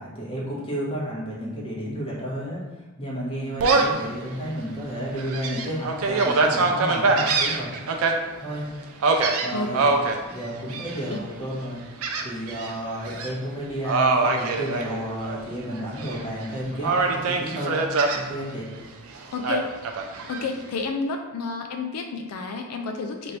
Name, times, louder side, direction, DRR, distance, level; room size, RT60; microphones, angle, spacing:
voice 1, 0.0-2.6 3.0-7.7 8.4-8.7 9.4-9.9 10.3-11.8 12.2-17.7 18.1-18.7, equal, 25° left, -5 dB, 1.0 m, -31 dB
Gull seagull, 3.6-4.0 4.5-4.6 5.2-8.1 9.0-10.2 10.7-11.2 12.0-12.7 13.0-13.3 13.8-15.4 15.7-16.5 16.8-18.2 19.4-20.4, right 3 dB, 65° right, 0.4 m, -23 dB
voice 2, 20.3-23.4, left 4 dB, 85° left, 4 dB, 0.4 m, -30 dB
3.1 x 2.6 x 4.4 m, 1.2 s
head